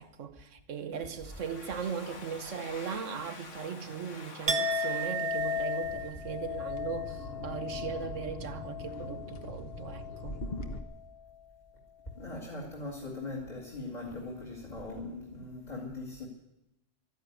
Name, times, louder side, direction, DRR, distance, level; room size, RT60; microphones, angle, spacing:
voice 1, 0.0-10.4, right 7 dB, 90° right, 1.4 m, -38 dB
Domestic sounds home sounds, 0.9-6.5, left 3 dB, 85° left, 2.1 m, -49 dB
Chink clink, 4.5-10.4 10.7-11.1, left 2 dB, 35° right, 1.0 m, -35 dB
sound 1, 5.8-10.8, left 2 dB, 55° left, 1.3 m, -42 dB
voice 2, 12.1-16.3, left 2 dB, 35° left, 2.4 m, -40 dB
13.0 x 10.5 x 9.5 m
omnidirectional pair, 1.2 m